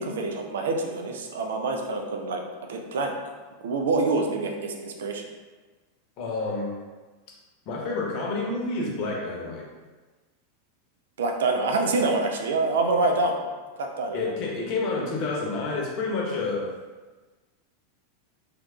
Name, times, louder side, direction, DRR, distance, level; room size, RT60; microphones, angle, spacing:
voice 1, 0.0-2.4 2.7-3.1 3.6-5.2 11.2-13.4 13.8-14.3, right 3 dB, 65° right, 3 dB, 0.4 m, -26 dB
voice 2, 6.2-6.7 7.6-9.7 14.1-16.7, left 3 dB, 45° left, -2 dB, 0.9 m, -29 dB
3.4 x 3.1 x 2.3 m, 1.3 s
figure-of-eight pair, 90°, 0 cm